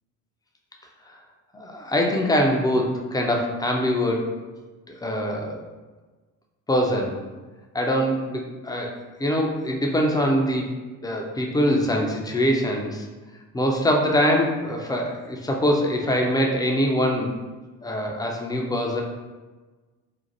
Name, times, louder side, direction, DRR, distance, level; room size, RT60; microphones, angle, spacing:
voice 1, 1.5-4.4 4.9-5.6 6.7-7.2 7.7-10.7 11.0-13.1 13.5-17.3 17.8-19.0, equal, 10° left, 0 dB, 0.3 m, -23 dB
2.6 x 2.4 x 4.0 m, 1.3 s
figure-of-eight pair, 50°, 48 cm